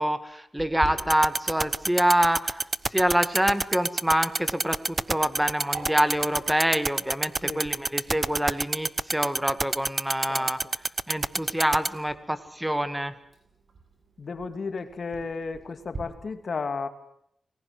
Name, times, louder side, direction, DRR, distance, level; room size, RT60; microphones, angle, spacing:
voice 1, 0.0-13.1, right 1 dB, 5° right, 11 dB, 1.9 m, -26 dB
Sink (filling or washing), 0.6-16.0, right 3 dB, 60° right, 7.8 m, -47 dB
sound 1, 1.0-11.9, right 3 dB, 30° right, 0.9 m, -25 dB
voice 2, 14.2-16.9, left 4 dB, 55° left, 9 dB, 2.6 m, -33 dB
29.5 x 20.5 x 7.8 m, 0.74 s
wide cardioid pair, 90°, 0 cm